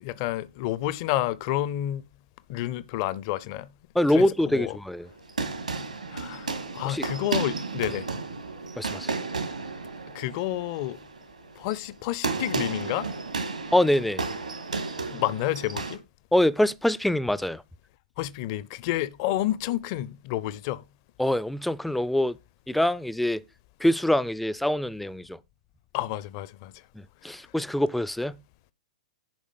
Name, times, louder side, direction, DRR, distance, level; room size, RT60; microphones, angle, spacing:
voice 1, 0.0-2.0 2.5-3.7 4.1-4.7 6.1-8.1 10.1-11.0 11.6-13.1 15.1-16.0 18.2-20.8 25.9-26.7, left 14 dB, 40° left, 0.6 m, -30 dB
voice 2, 3.9-5.1 6.8-7.0 8.8-9.1 13.7-14.2 16.3-17.6 21.2-22.4 22.7-23.4 23.8-25.4 27.0-28.4, left 1 dB, ahead, 0.4 m, -24 dB
sound 1, 5.1-16.0, right 4 dB, 80° right, 2.1 m, -33 dB
10.5 x 5.1 x 5.2 m
figure-of-eight pair, 105°, 4 cm